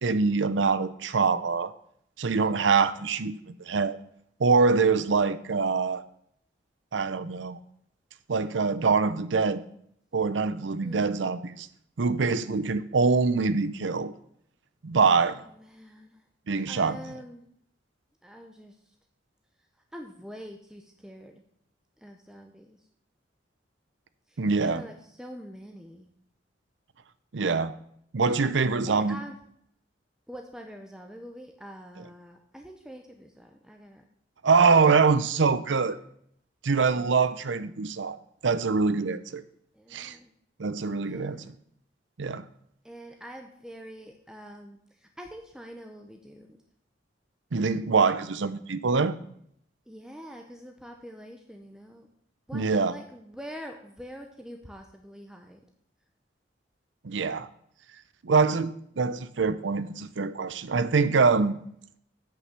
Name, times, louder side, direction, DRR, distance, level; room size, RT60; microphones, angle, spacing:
voice 1, 0.0-1.7 2.2-3.3 3.7-4.0 4.4-6.0 6.9-7.6 8.3-9.6 10.1-11.7 12.0-14.1 14.8-15.4 16.5-17.0 24.4-24.8 27.3-27.7 28.1-29.2 34.4-36.0 36.6-38.2 38.4-39.4 39.9-40.2 40.6-41.6 42.2-42.4 47.5-49.1 52.5-52.9 57.0-57.5 58.2-61.6, right 4 dB, 85° right, 15 dB, 0.6 m, -24 dB
voice 2, 10.8-11.2 15.3-16.2 16.7-17.4 18.2-18.8 19.9-21.4 22.0-22.8 24.3-26.1 28.9-29.4 30.3-34.0 36.9-37.3 39.7-40.3 41.0-41.6 42.8-46.5 49.9-52.1 52.5-55.6, equal, 5° right, 3 dB, 0.7 m, -45 dB
8.1 x 6.6 x 6.7 m, 0.69 s
head